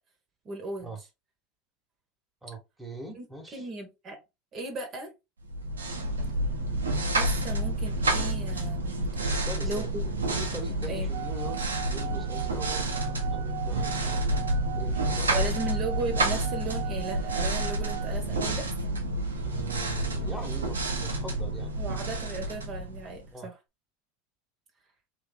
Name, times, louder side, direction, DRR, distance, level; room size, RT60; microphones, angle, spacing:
voice 1, 0.4-0.9 3.1-3.3 3.5-4.2 4.5-5.1 7.1-9.0 9.6-10.0 10.9-11.1 15.3-18.7 21.8-23.5, right 2 dB, 35° right, 1.2 m, -36 dB
voice 2, 2.4-3.7 9.2-9.9 10.4-14.2 14.8-15.5 19.4-21.7 23.3-23.5, right 2 dB, 5° right, 1.5 m, -42 dB
sound 1, 5.5-23.3, right 1 dB, 85° right, 0.9 m, -29 dB
sound 2, 11.1-18.2, right 17 dB, 60° right, 0.5 m, -39 dB
3.2 x 2.8 x 4.0 m
hypercardioid pair, 80°, 0 cm